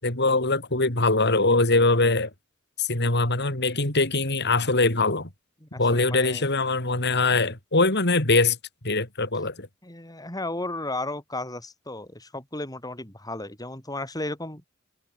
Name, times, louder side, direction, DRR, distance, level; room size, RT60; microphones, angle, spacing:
voice 1, 0.0-2.3 2.8-5.3 5.8-8.6 8.8-9.7, left 3 dB, 55° left, 5.5 m, -22 dB
voice 2, 5.6-6.5 9.8-14.6, left 2 dB, 20° left, 7.8 m, -34 dB
head